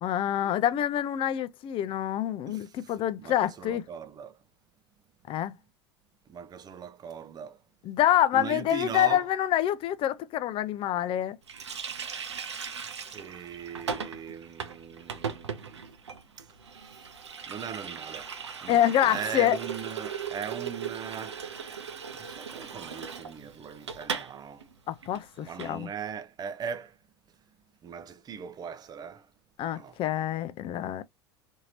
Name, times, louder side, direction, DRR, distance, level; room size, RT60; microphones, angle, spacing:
voice 1, 0.0-3.8 5.3-5.5 7.9-11.4 18.7-19.6 24.9-25.9 29.6-31.0, left 11 dB, 40° left, 0.5 m, -26 dB
voice 2, 2.5-4.4 6.3-7.6 8.3-9.3 13.1-15.8 16.4-17.1 17.5-18.3 18.6-21.5 22.1-24.7 25.4-27.0 27.8-29.3 29.7-30.0, right 7 dB, 30° right, 0.6 m, -40 dB
Water tap faucet, 11.5-24.3 24.6-24.7 25.0-25.7, right 6 dB, 85° right, 0.5 m, -38 dB
2.9 x 2.7 x 2.7 m
hypercardioid pair, 80°, 14 cm